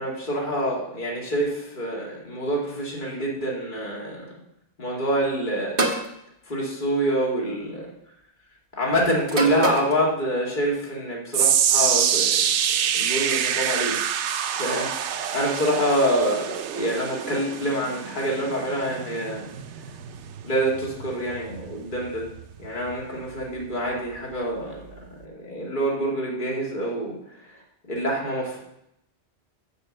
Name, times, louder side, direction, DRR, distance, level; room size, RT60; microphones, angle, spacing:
voice 1, 0.0-4.3 4.8-5.9 6.5-7.9 8.8-12.5 12.9-14.0 14.5-19.5 20.4-22.3 22.6-24.8 25.2-27.2 27.4-27.5 27.9-28.6, right 1 dB, 45° left, -3 dB, 2.3 m, -26 dB
sound 1, 5.8-6.1 7.3-7.6 9.3-10.0, right 2 dB, 55° right, 1.5 m, -25 dB
sound 2, 11.3-23.7 24.0-24.3 25.0-25.1, right 8 dB, 90° right, 0.9 m, -26 dB
7.0 x 6.8 x 7.5 m, 0.79 s
omnidirectional pair, 1.1 m